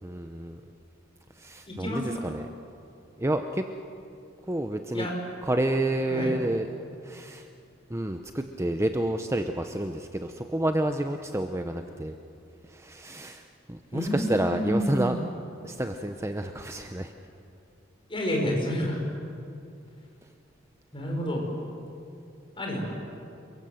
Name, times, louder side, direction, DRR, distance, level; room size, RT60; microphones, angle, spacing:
voice 1, 0.0-0.6 1.4-2.5 3.2-3.6 4.5-5.1 5.4-6.7 7.0-7.5 7.9-12.2 12.6-15.2 15.6-17.1 20.2-20.3, right 1 dB, 15° right, 6 dB, 0.8 m, -29 dB
voice 2, 1.7-2.1 4.9-5.1 6.1-6.3 13.9-15.1 18.1-19.0 20.9-21.5 22.6-23.0, equal, 25° left, 0 dB, 5.4 m, -29 dB
28.5 x 22.5 x 7.8 m, 2.6 s
head